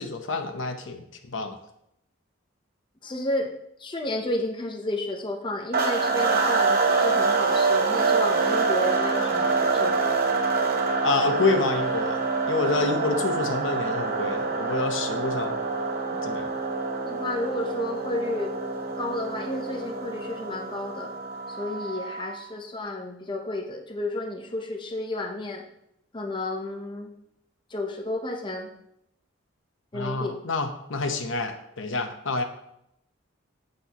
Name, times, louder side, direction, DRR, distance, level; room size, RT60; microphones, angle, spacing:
voice 1, 0.0-1.6 11.0-15.6 16.2-16.5 29.9-32.4, left 3 dB, 65° left, 6 dB, 0.8 m, -28 dB
voice 2, 3.0-3.5 3.8-10.2 17.0-18.5 19.0-21.1 21.5-25.6 26.1-27.1 27.7-28.7 29.9-30.4, left 1 dB, 25° left, 2 dB, 0.7 m, -31 dB
sound 1, 5.7-22.4, right 4 dB, 45° right, 0.9 m, -26 dB
8.3 x 7.6 x 2.9 m, 0.79 s
head